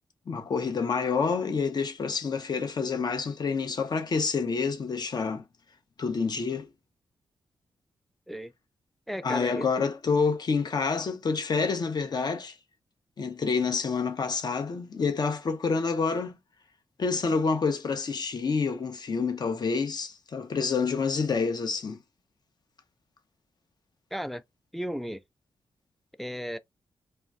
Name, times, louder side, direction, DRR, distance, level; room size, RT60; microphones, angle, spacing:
voice 1, 0.3-5.4 6.0-6.7 9.2-12.6 13.2-16.4 17.0-22.0, left 5 dB, 50° left, 0.6 m, -28 dB
voice 2, 9.1-9.9 24.1-24.4 24.7-25.2 26.2-26.6, equal, ahead, 0.3 m, -34 dB
3.2 x 2.2 x 2.4 m
cardioid pair, 55°, 9 cm